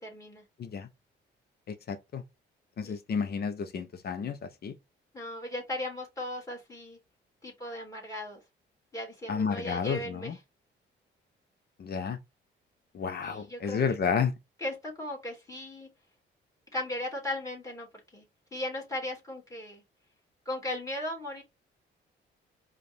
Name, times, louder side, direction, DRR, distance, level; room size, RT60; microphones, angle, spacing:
voice 1, 0.0-0.4 2.8-3.0 5.1-7.0 7.4-8.4 8.9-10.4 13.2-13.8 14.6-15.9 16.7-17.9 18.1-18.3 18.5-19.8 20.5-21.4, left 1 dB, 15° left, 2.6 m, -37 dB
voice 2, 1.7-2.2 2.8-4.7 9.3-10.4 11.8-12.2 12.9-14.3, left 6 dB, 50° left, 0.9 m, -31 dB
4.9 x 2.6 x 3.5 m
cardioid pair, 90°, 20 cm